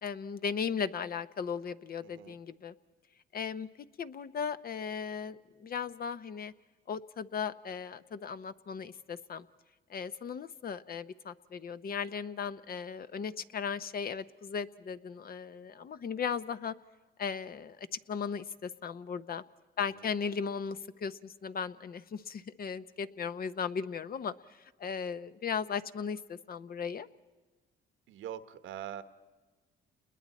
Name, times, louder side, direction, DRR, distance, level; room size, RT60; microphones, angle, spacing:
voice 1, 0.0-2.7 3.3-3.7 4.0-6.5 6.9-9.5 9.9-16.7 17.2-19.4 19.8-24.3 24.8-27.1, left 6 dB, 50° left, 12 dB, 0.8 m, -37 dB
voice 2, 2.0-2.4 19.9-20.1 28.1-29.0, right 10 dB, 85° right, 11 dB, 1.1 m, -43 dB
29.0 x 21.0 x 4.2 m, 1.3 s
cardioid pair, 90°, 20 cm